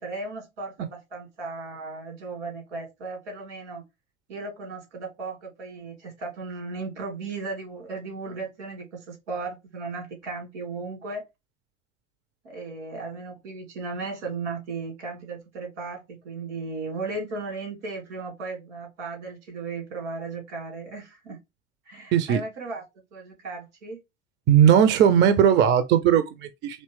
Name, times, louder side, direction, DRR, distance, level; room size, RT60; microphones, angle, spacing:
voice 1, 0.0-3.8 4.3-11.2 12.4-21.4 21.9-22.8 23.1-24.0, right 3 dB, 75° right, 2.0 m, -36 dB
voice 2, 24.5-26.8, right 9 dB, 30° right, 0.5 m, -18 dB
4.3 x 3.0 x 3.1 m
hypercardioid pair, 80°, 36 cm